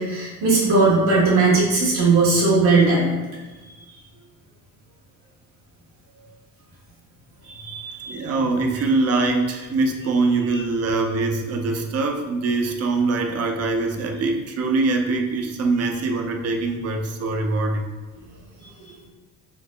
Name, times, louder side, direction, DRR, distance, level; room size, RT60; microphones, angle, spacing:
voice 1, 0.0-3.1 7.5-8.2 10.5-10.6 18.9-19.0, right 3 dB, 70° right, -7 dB, 1.5 m, -19 dB
voice 2, 8.1-17.9, right 3 dB, 40° right, 4 dB, 0.5 m, -23 dB
4.0 x 2.0 x 3.2 m, 1.2 s
cardioid pair, 110°, 41 cm